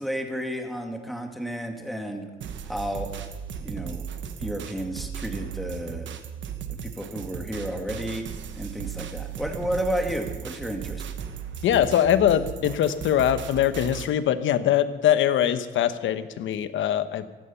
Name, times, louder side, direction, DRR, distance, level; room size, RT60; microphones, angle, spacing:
voice 1, 0.0-2.3 2.7-3.1 3.6-4.0 4.4-6.1 6.8-8.2 8.5-11.0, equal, ahead, 3 dB, 2.3 m, -31 dB
sound 1, 2.4-14.1, right 8 dB, 70° right, 1.2 m, -36 dB
voice 2, 11.6-17.3, left 10 dB, 75° left, 12 dB, 1.0 m, -22 dB
15.5 x 12.5 x 5.8 m, 1.3 s
cardioid pair, 90°, 20 cm